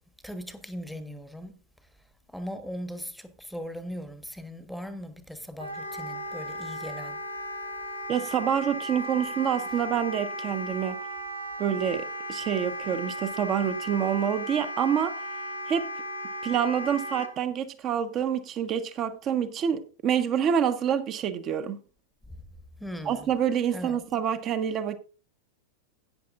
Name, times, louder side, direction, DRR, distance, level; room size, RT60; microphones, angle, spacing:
voice 1, 0.2-1.5 2.3-7.2 22.8-23.3 23.7-24.0, equal, ahead, 1.2 m, -39 dB
Wind instrument woodwind instrument, 5.6-17.3, equal, 85° right, 1.5 m, -36 dB
voice 2, 8.1-11.0 11.6-15.2 15.7-15.9 16.4-21.8 23.0-25.0, right 8 dB, 30° right, 1.2 m, -27 dB
16.5 x 9.5 x 2.5 m
figure-of-eight pair, 90°, 0 cm